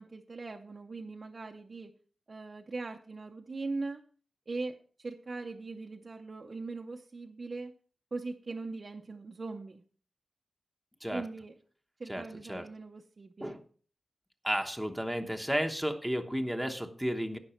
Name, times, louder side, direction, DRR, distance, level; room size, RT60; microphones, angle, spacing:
voice 1, 0.0-1.9 2.3-4.1 4.5-7.7 8.1-9.8 11.1-11.5 12.0-13.6, right 3 dB, 35° right, 1 dB, 0.7 m, -40 dB
voice 2, 14.4-17.4, equal, ahead, 4 dB, 1.0 m, -32 dB
17.0 x 6.1 x 4.4 m, 0.43 s
wide cardioid pair, 160°, 0 cm